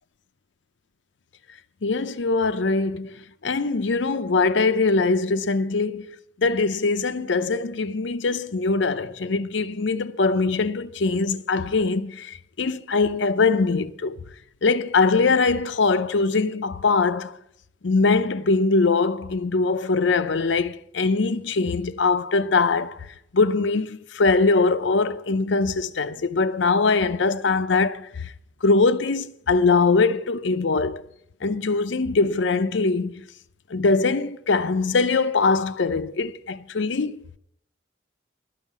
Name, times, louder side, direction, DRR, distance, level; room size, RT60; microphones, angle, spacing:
voice 1, 1.8-14.1 14.6-17.4 17.8-23.1 23.3-28.3 28.6-31.0 31.4-33.2 33.7-37.2, left 3 dB, 80° left, 0.6 m, -22 dB
12.5 x 5.7 x 9.3 m
head